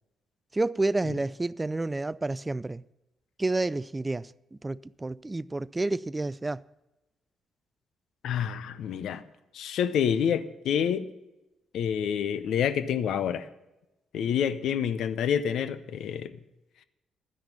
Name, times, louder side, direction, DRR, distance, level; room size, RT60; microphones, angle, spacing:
voice 1, 0.5-2.8 3.4-6.6, right 2 dB, 20° right, 0.3 m, -30 dB
voice 2, 8.2-9.2 9.5-11.1 11.7-13.5 14.1-16.4, left 8 dB, 65° left, 0.6 m, -28 dB
11.5 x 10.5 x 5.5 m
hypercardioid pair, 45°, 0 cm